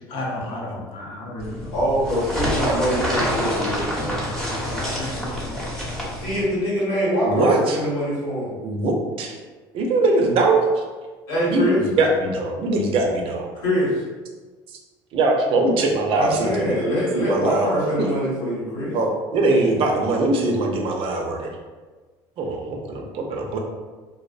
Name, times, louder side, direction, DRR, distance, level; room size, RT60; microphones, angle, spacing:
voice 1, 0.1-1.7 4.8-5.6, left 1 dB, 60° left, -3 dB, 0.7 m, -33 dB
sound 1, 1.4-6.4, equal, 5° left, 0.8 m, -27 dB
voice 2, 1.7-4.3 6.2-8.5 11.3-11.8 13.5-13.9 16.1-18.9, equal, 90° left, -8 dB, 1.4 m, -24 dB
voice 3, 7.2-7.8 8.6-9.3 9.7-10.7 11.5-13.5 15.1-16.8 17.1-18.1 18.9-21.5 22.4-23.6, right 2 dB, 60° right, 1 dB, 0.5 m, -21 dB
2.5 x 2.1 x 2.4 m, 1.3 s
supercardioid pair, 85°, 11 cm